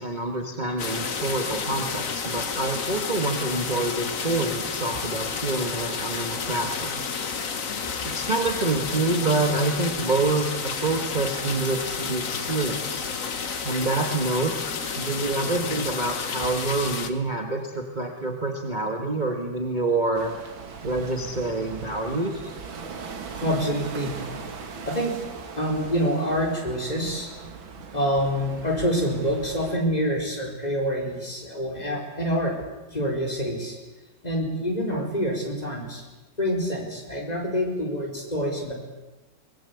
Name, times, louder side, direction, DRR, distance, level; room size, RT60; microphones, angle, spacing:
voice 1, 0.0-7.0 8.0-13.1 13.6-14.5 15.0-20.3 20.8-22.5, right 2 dB, 25° right, 2 dB, 1.9 m, -27 dB
sound 1, 0.8-17.1, left 5 dB, 45° left, 1.7 m, -31 dB
sound 2, 20.1-29.8, right 5 dB, 85° right, 2.7 m, -39 dB
voice 2, 23.4-24.2 24.9-25.2 25.6-27.3 27.9-32.6 32.9-33.8 34.2-36.0 36.4-38.7, equal, 20° left, 0 dB, 4.6 m, -26 dB
23.0 x 20.0 x 8.6 m, 1.1 s
omnidirectional pair, 2.1 m